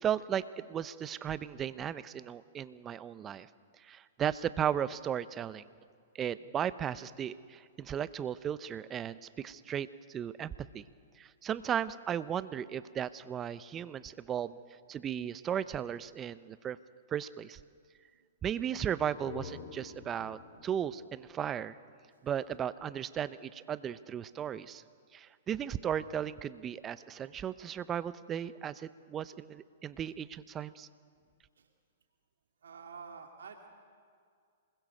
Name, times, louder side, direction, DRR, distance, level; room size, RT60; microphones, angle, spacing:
voice 1, 0.0-3.5 3.8-5.6 6.1-10.8 11.2-14.6 14.9-16.8 17.1-17.6 18.4-21.8 22.2-24.8 25.1-30.9, right 9 dB, 25° right, 16 dB, 0.7 m, -36 dB
sound 1, 18.9-22.5, left 6 dB, 55° left, 2.6 m, -49 dB
voice 2, 32.6-33.7, right 5 dB, 80° right, 3 dB, 2.2 m, -49 dB
27.0 x 21.0 x 6.6 m, 2.2 s
hypercardioid pair, 125°, 0 cm